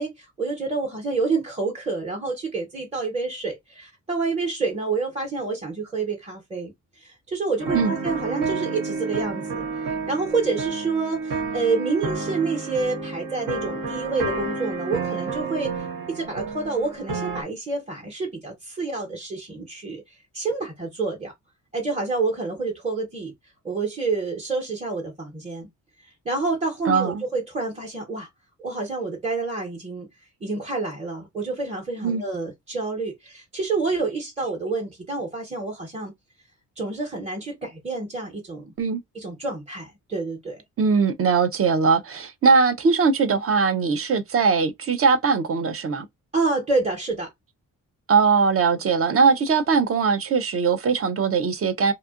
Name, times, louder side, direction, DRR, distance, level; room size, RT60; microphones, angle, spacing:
voice 1, 0.0-21.3 21.7-23.3 23.6-25.7 26.2-28.3 28.6-30.1 30.4-36.1 36.8-38.7 39.1-40.6 46.3-47.3, right 3 dB, 15° right, 1.0 m, -28 dB
sound 1, 7.6-17.4, right 4 dB, 70° right, 1.1 m, -30 dB
voice 2, 26.9-27.2 32.0-32.2 38.8-39.0 40.8-46.1 48.1-51.9, right 5 dB, 40° right, 0.5 m, -20 dB
2.7 x 2.4 x 2.4 m
cardioid pair, 95°, 35 cm